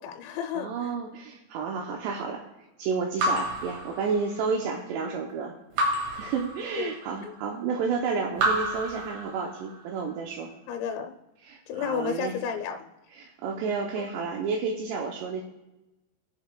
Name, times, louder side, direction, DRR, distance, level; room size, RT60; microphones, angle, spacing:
voice 1, 0.0-0.9 6.8-6.9 7.2-7.3 10.7-11.1 11.7-12.9 14.0-14.1, left 7 dB, 80° left, 5 dB, 2.9 m, -32 dB
voice 2, 0.5-2.4 2.8-5.6 6.1-10.5 11.4-12.4 13.1-15.4, right 5 dB, 80° right, 1 dB, 2.8 m, -31 dB
Raindrop / Drip, 3.2-4.6 5.8-7.1 8.3-9.8, right 1 dB, 60° right, 3.5 m, -29 dB
21.0 x 7.4 x 2.3 m, 1.0 s
omnidirectional pair, 5.3 m